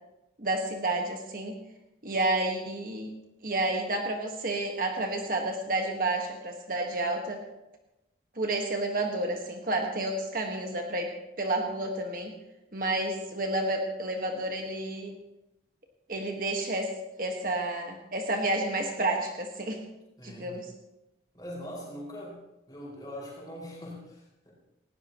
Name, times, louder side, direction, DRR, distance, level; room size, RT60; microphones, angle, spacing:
voice 1, 0.4-1.5 2.0-3.1 3.4-7.4 8.4-12.3 12.7-15.1 16.1-16.9 17.2-19.8 20.2-20.7, right 2 dB, 50° right, 2 dB, 1.6 m, -30 dB
voice 2, 20.2-20.6 21.3-22.4 22.7-24.5, equal, 20° left, -5 dB, 5.5 m, -42 dB
19.5 x 16.5 x 3.1 m, 0.92 s
head